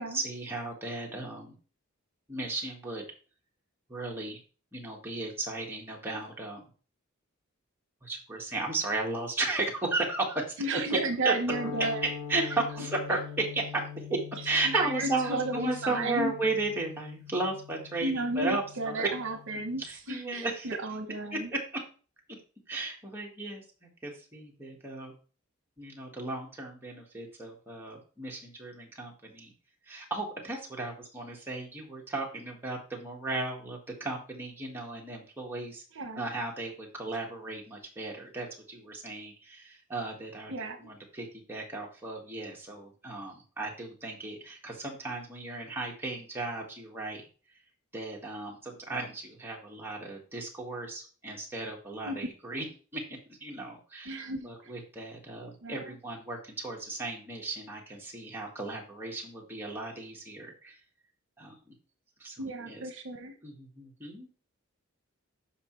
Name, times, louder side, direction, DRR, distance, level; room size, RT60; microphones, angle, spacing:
voice 1, 0.0-1.5 2.3-3.1 3.9-4.4 4.7-6.6 8.0-10.6 11.2-11.3 12.3-19.1 19.8-20.7 21.3-21.8 22.7-25.1 25.8-29.5 29.9-35.8 36.1-47.2 47.9-52.6 52.9-60.7 61.4-61.7 62.2-62.8 63.4-64.3, right 2 dB, 10° right, -2 dB, 1.8 m, -35 dB
voice 2, 10.6-12.0 14.6-16.3 18.0-19.8 20.1-21.5 35.9-36.2 40.5-40.9 52.0-52.2 54.1-54.7 55.6-56.0 62.4-63.3, right 2 dB, 60° right, 7 dB, 1.0 m, -33 dB
sound 1, 11.5-19.9, left 7 dB, 45° left, 4.0 m, -43 dB
9.8 x 5.7 x 3.2 m, 0.38 s
head